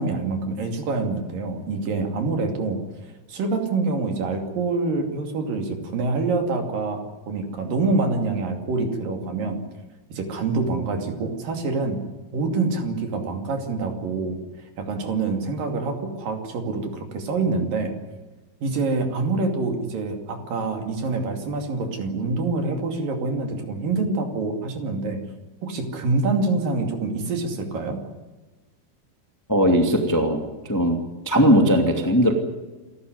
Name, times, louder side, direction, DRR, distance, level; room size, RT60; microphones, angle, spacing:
voice 1, 0.0-2.8 3.3-9.6 10.1-12.0 12.3-14.4 14.8-17.9 18.6-25.2 25.6-28.0, right 3 dB, 55° right, 4 dB, 4.0 m, -26 dB
voice 2, 29.5-31.0 31.2-32.3, equal, 10° left, 3 dB, 1.2 m, -19 dB
28.5 x 13.5 x 9.7 m, 1.2 s
omnidirectional pair, 4.9 m